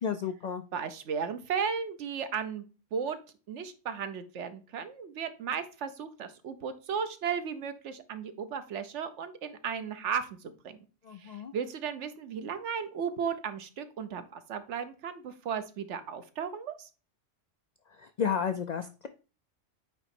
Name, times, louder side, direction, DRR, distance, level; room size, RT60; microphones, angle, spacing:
voice 1, 0.0-0.6 11.1-11.5 18.0-19.1, left 7 dB, 80° left, 8 dB, 0.3 m, -32 dB
voice 2, 0.7-2.6 2.9-3.2 3.5-10.8 11.2-16.9, right 7 dB, 70° right, 10 dB, 1.0 m, -35 dB
8.9 x 3.0 x 4.3 m, 0.34 s
omnidirectional pair, 1.3 m